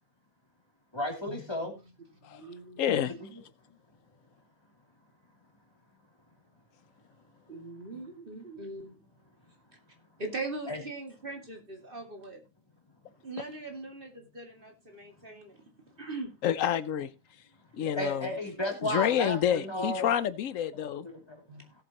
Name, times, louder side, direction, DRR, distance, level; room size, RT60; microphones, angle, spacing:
voice 1, 0.9-1.7 2.9-3.0 10.7-10.8 17.9-20.1 21.0-21.4, left 1 dB, 20° left, 2.8 m, -33 dB
voice 2, 2.2-3.4 7.5-9.0 10.2-12.4 13.2-15.6 16.0-16.3 21.5-21.7, right 2 dB, 45° right, 2.5 m, -41 dB
voice 3, 2.8-3.1 16.4-17.1 17.7-18.3 18.8-21.1, left 10 dB, 85° left, 1.1 m, -28 dB
17.5 x 7.7 x 2.9 m
omnidirectional pair, 1.3 m